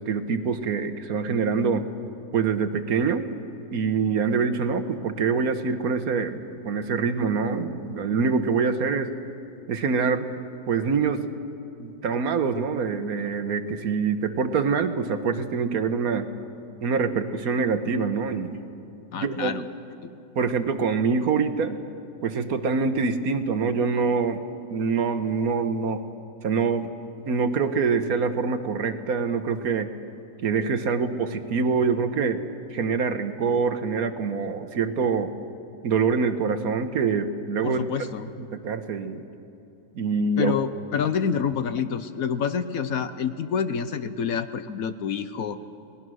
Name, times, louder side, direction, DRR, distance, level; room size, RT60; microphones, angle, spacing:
voice 1, 0.0-1.8 2.3-3.2 3.7-9.1 9.7-10.3 10.7-11.2 11.8-16.3 16.8-18.6 19.1-19.5 20.3-21.8 22.2-24.4 24.7-26.0 26.4-26.9 27.2-29.9 30.4-32.4 32.7-35.3 35.8-37.8 38.5-39.2 39.9-40.5, right 5 dB, 65° right, 9 dB, 1.4 m, -25 dB
voice 2, 19.1-19.6 20.0-20.1 37.6-38.3 40.4-45.6, left 7 dB, 65° left, 11 dB, 1.1 m, -28 dB
28.5 x 19.5 x 6.3 m, 2.8 s
omnidirectional pair, 1.8 m